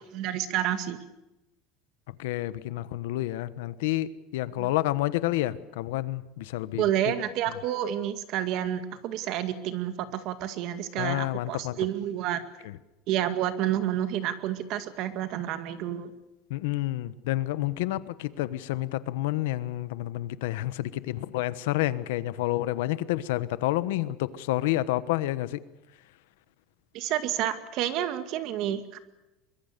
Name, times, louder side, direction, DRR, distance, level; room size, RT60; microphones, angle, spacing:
voice 1, 0.1-1.0 4.6-4.7 6.8-12.4 13.1-16.1 26.9-29.0, right 11 dB, 50° right, 10 dB, 2.1 m, -29 dB
voice 2, 2.2-6.8 11.0-11.8 16.5-25.6, left 16 dB, 85° left, 15 dB, 1.2 m, -29 dB
24.0 x 22.0 x 6.8 m, 0.98 s
cardioid pair, 160°, 0 cm